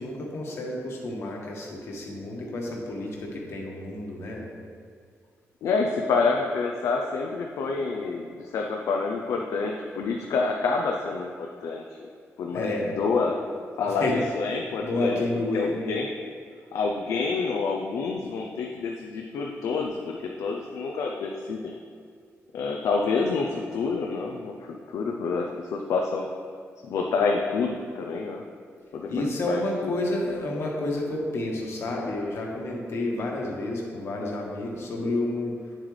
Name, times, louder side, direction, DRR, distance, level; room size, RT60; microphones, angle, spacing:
voice 1, 0.0-4.5 12.5-12.9 13.9-14.2 14.8-15.7 29.1-35.9, left 2 dB, 55° left, -1 dB, 1.4 m, -30 dB
voice 2, 5.6-11.8 12.4-12.7 13.0-13.4 13.8-15.2 15.5-16.1 16.7-21.7 22.5-26.3 26.9-28.4 28.9-29.1 29.5-29.9, left 4 dB, 90° left, 1 dB, 0.6 m, -27 dB
8.9 x 7.4 x 3.3 m, 2.2 s
wide cardioid pair, 160°, 5 cm